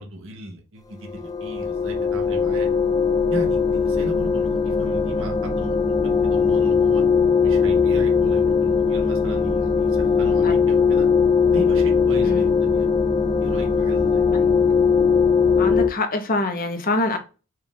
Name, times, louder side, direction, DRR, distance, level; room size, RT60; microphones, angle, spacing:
voice 1, 0.0-2.7 3.3-7.0 7.4-11.1 11.5-12.9 13.4-14.3, right 1 dB, 60° right, 0.8 m, -37 dB
sound 1, 1.0-15.9, left 5 dB, 15° left, 0.3 m, -20 dB
voice 2, 15.6-17.2, left 2 dB, 40° left, 0.7 m, -24 dB
4.4 x 2.3 x 3.6 m
head